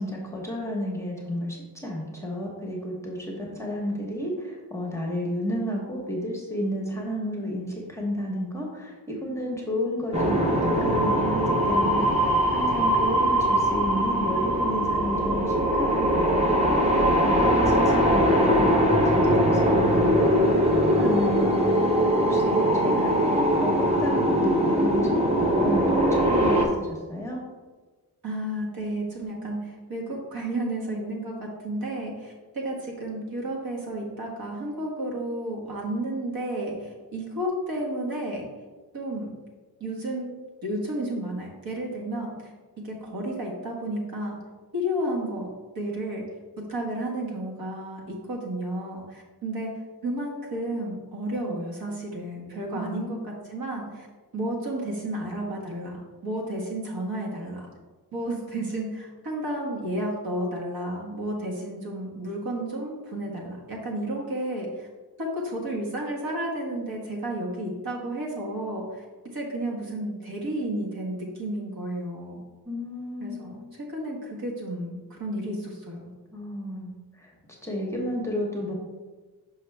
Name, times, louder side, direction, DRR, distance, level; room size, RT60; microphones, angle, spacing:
voice 1, 0.0-16.9 17.2-20.4 21.0-21.7 22.3-25.1 25.4-27.4 52.7-53.1 72.7-73.6 76.3-76.9 77.2-77.3 77.6-78.7, left 1 dB, 5° left, -2 dB, 1.0 m, -32 dB
sound 1, 10.1-26.7, equal, 15° right, 0.8 m, -21 dB
voice 2, 20.9-21.4 28.2-38.5 38.9-39.3 39.8-40.3 40.6-42.5 42.8-44.4 44.7-46.2 46.7-49.7 50.0-54.1 54.3-57.7 58.1-64.9 65.2-69.0 69.3-72.4 73.2-76.1, right 1 dB, 60° right, -2 dB, 1.6 m, -32 dB
5.8 x 5.7 x 3.3 m, 1.3 s
wide cardioid pair, 165°, 40 cm